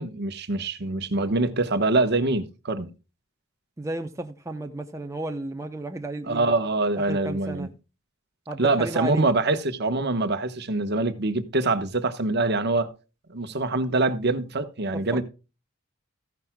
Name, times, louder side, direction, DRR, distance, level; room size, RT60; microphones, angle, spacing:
voice 1, 0.0-2.9 6.3-7.7 8.6-12.9 13.3-15.2, right 2 dB, 55° right, 1.1 m, -24 dB
voice 2, 3.8-6.5 7.1-7.7 8.5-9.2 15.1-15.2, right 2 dB, 15° right, 0.7 m, -33 dB
14.5 x 10.5 x 2.2 m
head